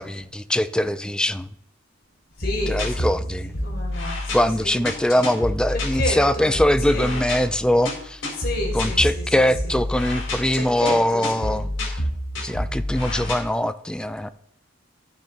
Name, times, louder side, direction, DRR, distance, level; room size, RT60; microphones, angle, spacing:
voice 1, 0.0-1.5 2.7-3.5 4.3-8.2 8.7-12.0 12.4-14.3, left 1 dB, 5° left, 12 dB, 0.4 m, -22 dB
sound 1, 2.4-13.3, left 1 dB, 80° left, 4.3 m, -29 dB
voice 2, 2.4-3.1 3.6-4.8 6.0-6.5 6.9-7.1 8.4-9.2 10.5-11.6, left 2 dB, 50° left, -2 dB, 4.5 m, -31 dB
12.0 x 9.0 x 4.0 m, 0.73 s
head